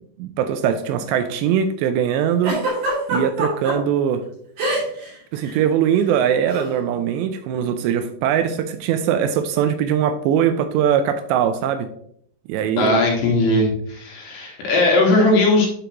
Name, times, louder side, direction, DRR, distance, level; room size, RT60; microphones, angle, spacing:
voice 1, 0.2-2.6 3.1-4.3 5.3-11.9 12.5-13.0, right 8 dB, 85° right, 9 dB, 2.6 m, -21 dB
Giggle, 2.4-3.7 4.6-5.1 5.3-5.6 6.5-6.7, right 1 dB, 50° right, 4.3 m, -23 dB
voice 2, 12.8-15.7, left 2 dB, 70° left, -1 dB, 3.5 m, -18 dB
10.0 x 5.1 x 3.0 m, 0.67 s
omnidirectional pair, 5.2 m